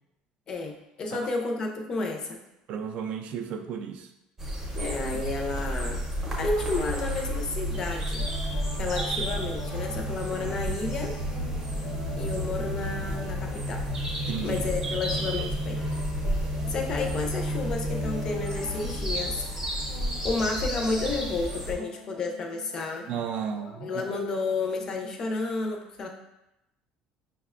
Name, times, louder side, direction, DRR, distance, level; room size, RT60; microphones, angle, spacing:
voice 1, 0.5-2.4 4.7-6.0 6.4-8.2 8.8-11.1 12.2-13.9 14.4-15.8 16.7-19.4 20.2-23.1 23.8-26.1, left 3 dB, 30° left, 2 dB, 0.4 m, -31 dB
voice 2, 2.7-4.1 14.3-14.6 23.1-24.0, right 7 dB, 50° right, 5 dB, 0.3 m, -33 dB
sound 1, 4.4-21.7, equal, 20° right, 0.6 m, -31 dB
sound 2, 8.1-8.8 9.2-17.2 17.5-18.8 19.1-19.6 19.9-23.2 23.5-24.2 24.6-24.8, left 4 dB, 85° left, 0.6 m, -46 dB
5.6 x 2.1 x 2.4 m, 0.90 s
cardioid pair, 160°, 2 cm